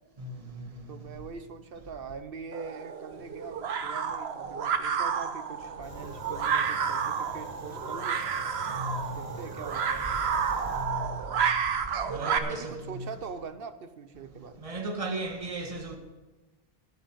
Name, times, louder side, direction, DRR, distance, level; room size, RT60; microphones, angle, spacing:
voice 1, 0.9-8.2 9.1-10.2 12.3-14.6, right 5 dB, 65° right, 1.1 m, -42 dB
sound 1, 2.5-12.4, right 7 dB, 85° right, 1.1 m, -30 dB
Fire, 5.8-10.8, left 1 dB, 55° left, 4.0 m, -46 dB
voice 2, 12.1-13.0 14.6-16.0, right 1 dB, 35° right, 1.5 m, -35 dB
10.5 x 9.1 x 7.4 m
omnidirectional pair, 1.0 m